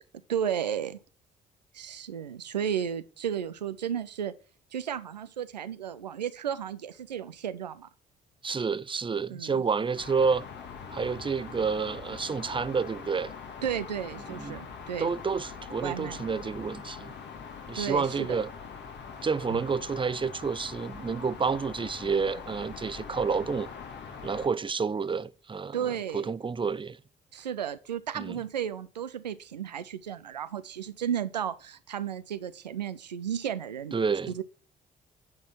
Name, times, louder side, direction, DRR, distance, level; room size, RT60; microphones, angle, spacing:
voice 1, 0.3-1.0 1.7-4.3 4.7-7.9 9.3-9.6 13.6-15.1 15.8-16.2 17.7-18.4 19.5-19.6 25.7-26.3 27.3-33.9 34.3-34.4, right 9 dB, 90° right, 0.4 m, -33 dB
voice 2, 8.4-10.5 10.9-13.3 14.3-14.6 15.0-17.1 17.7-18.5 19.2-23.7 24.2-27.0 28.2-28.4 33.9-34.3, right 5 dB, 25° right, 0.7 m, -29 dB
sound 1, 10.0-24.5, left 6 dB, 60° left, 2.0 m, -43 dB
8.5 x 6.0 x 7.2 m
figure-of-eight pair, 40°, 21 cm